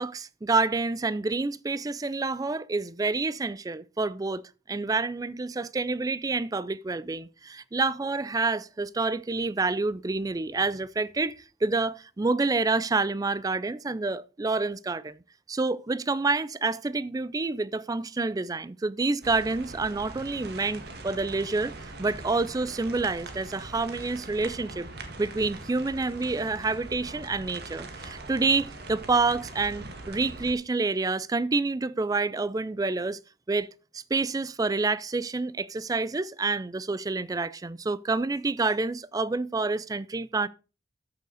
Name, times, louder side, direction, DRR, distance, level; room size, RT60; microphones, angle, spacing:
voice 1, 0.0-4.4 4.7-11.3 11.6-15.2 15.5-24.9 25.2-33.2 33.5-33.7 33.9-40.5, right 3 dB, 20° right, 0.4 m, -28 dB
sound 1, 19.2-30.5, right 2 dB, 55° right, 1.7 m, -42 dB
13.0 x 6.6 x 4.0 m
head